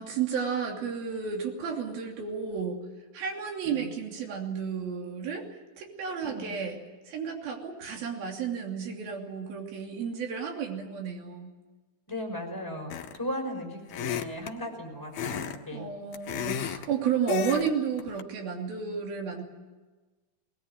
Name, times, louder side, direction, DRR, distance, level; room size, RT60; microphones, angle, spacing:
voice 1, 0.0-2.8 3.1-5.5 5.8-6.8 7.1-11.5 15.7-19.4, right 6 dB, 75° right, 1 dB, 4.8 m, -32 dB
voice 2, 6.2-6.6 12.1-15.9, left 1 dB, 5° left, -1 dB, 5.6 m, -37 dB
sound 1, 12.9-13.3 13.9-14.5 15.1-15.6 15.9-16.9 17.3-17.7 18.0-18.2, left 10 dB, 80° left, 3.1 m, -33 dB
22.0 x 20.5 x 9.6 m, 1.3 s
omnidirectional pair, 4.3 m